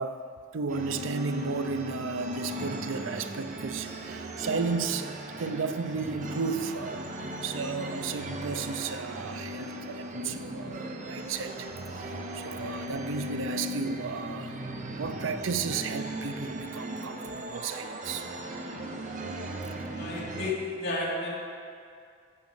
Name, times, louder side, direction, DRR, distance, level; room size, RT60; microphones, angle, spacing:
voice 1, 0.0-14.6 15.0-18.3 20.1-20.3, right 4 dB, 80° right, 9 dB, 0.6 m, -34 dB
sound 1, 0.7-20.5, right 1 dB, 40° right, 0.9 m, -38 dB
voice 2, 20.0-21.3, left 2 dB, 60° left, -5 dB, 2.6 m, -32 dB
12.0 x 5.2 x 7.3 m, 2.3 s
head